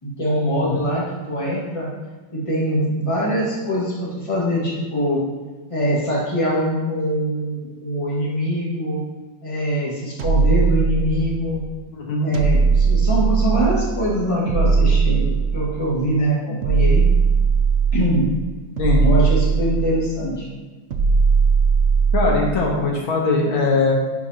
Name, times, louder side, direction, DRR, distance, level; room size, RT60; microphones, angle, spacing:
voice 1, 0.0-1.9 2.3-5.2 5.7-9.0 9.4-11.6 12.2-17.1 17.9-18.3 19.0-20.5, equal, 15° left, -6 dB, 1.6 m, -23 dB
sound 1, 10.2-11.5 12.3-14.0 14.5-15.9 16.6-18.2 18.8-20.2 20.9-22.5, right 5 dB, 90° right, 0.7 m, -18 dB
voice 2, 11.9-12.3 18.8-19.0 22.1-23.9, left 3 dB, 80° left, -2 dB, 2.0 m, -21 dB
10.5 x 4.4 x 2.8 m, 1.3 s
omnidirectional pair, 2.2 m